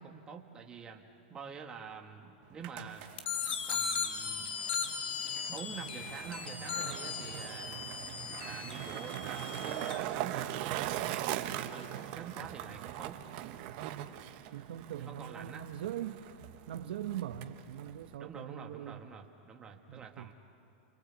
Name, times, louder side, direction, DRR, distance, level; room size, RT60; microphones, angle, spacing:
voice 1, 0.0-3.1 3.7-4.5 5.5-8.2 8.4-13.3 15.0-15.7 18.2-20.3, right 6 dB, 15° right, 1 dB, 1.8 m, -47 dB
Skateboard, 2.4-18.1, right 12 dB, 45° right, 1.2 m, -41 dB
sound 1, 3.2-10.0, left 6 dB, 90° left, 2.5 m, -37 dB
voice 2, 14.5-16.2 16.7-19.0 19.9-20.3, right 11 dB, 75° right, 7 dB, 1.2 m, -41 dB
29.0 x 24.5 x 8.4 m, 2.6 s
supercardioid pair, 155°, 6 cm